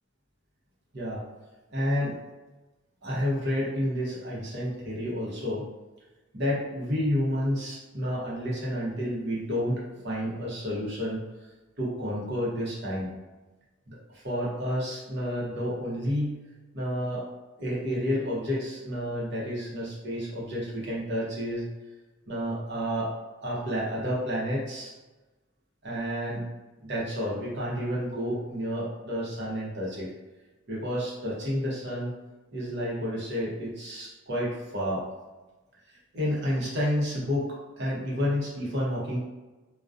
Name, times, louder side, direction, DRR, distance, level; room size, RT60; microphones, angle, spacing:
voice 1, 1.7-2.2 3.0-5.6 6.3-11.2 11.8-13.1 13.9-16.4 16.7-17.2 17.6-21.7 22.3-23.1 23.4-24.9 25.8-26.4 26.8-30.1 30.7-32.1 32.5-35.0 35.9-39.2, equal, 55° right, -6 dB, 0.8 m, -30 dB
2.4 x 2.2 x 2.4 m, 1.2 s
head